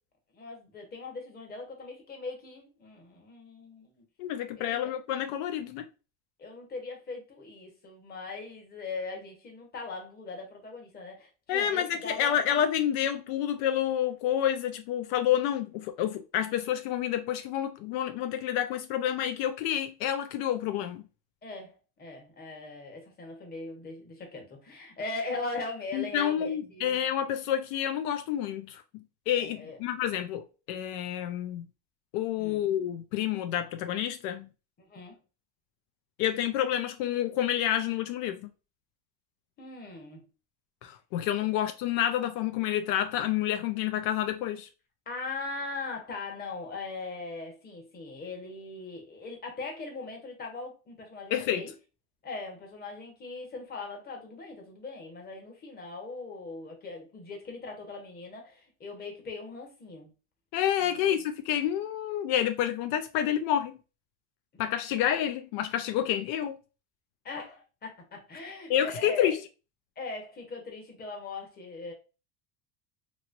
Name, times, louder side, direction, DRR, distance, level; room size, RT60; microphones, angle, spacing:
voice 1, 0.3-4.0 4.6-4.8 6.4-12.4 21.4-21.7 22.0-27.0 29.4-29.8 32.4-32.6 34.9-35.2 39.6-40.2 45.1-51.7 52.2-60.1 60.8-61.2 67.2-69.3 70.0-71.9, left 3 dB, 25° left, 1.0 m, -40 dB
voice 2, 4.2-5.8 11.5-21.0 25.9-31.7 32.1-34.5 36.2-38.5 40.8-44.7 51.3-51.6 60.5-63.8 64.6-66.6 68.7-69.4, left 10 dB, 75° left, 0.5 m, -29 dB
3.0 x 2.9 x 2.5 m
cardioid pair, 150°, 39 cm